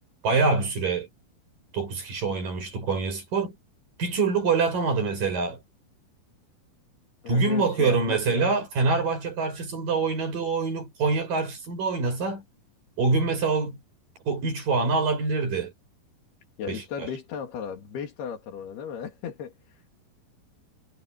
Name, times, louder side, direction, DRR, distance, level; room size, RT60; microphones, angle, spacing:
voice 1, 0.2-1.1 1.7-3.6 4.0-5.6 7.3-12.4 13.0-13.8 14.3-15.7 16.7-17.1, right 4 dB, 60° right, 8.4 m, -25 dB
voice 2, 7.2-8.5 16.6-19.5, left 7 dB, 90° left, 4.8 m, -35 dB
omnidirectional pair, 4.4 m